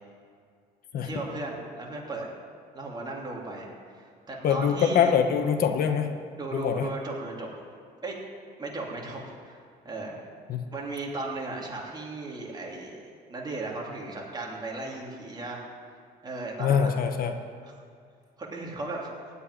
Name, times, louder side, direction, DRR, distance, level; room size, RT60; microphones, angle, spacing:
voice 1, 1.0-2.3 2.7-5.2 6.4-7.5 8.0-8.2 8.6-9.6 9.8-10.1 10.7-13.0 13.3-15.6 16.2-16.9 17.6-17.7 18.4-19.1, right 2 dB, 25° right, -2 dB, 3.0 m, -36 dB
voice 2, 4.4-6.1 6.5-6.9 10.5-10.6 16.6-17.3, left 7 dB, 60° left, 7 dB, 1.0 m, -24 dB
16.0 x 5.6 x 9.8 m, 2.2 s
cardioid pair, 110°, 17 cm